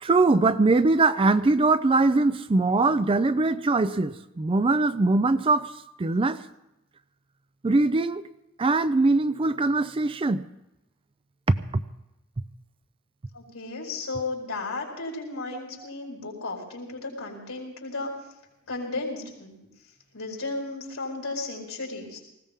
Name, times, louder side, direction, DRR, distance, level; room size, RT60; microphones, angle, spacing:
voice 1, 0.0-5.7 6.0-6.4 7.6-8.3 8.6-10.5 11.5-11.8 15.5-15.6, right 3 dB, 25° right, 13 dB, 0.4 m, -22 dB
voice 2, 13.3-18.1 18.7-19.5 20.1-22.2, left 3 dB, 85° left, -2 dB, 4.5 m, -34 dB
19.5 x 16.5 x 3.6 m, 0.90 s
head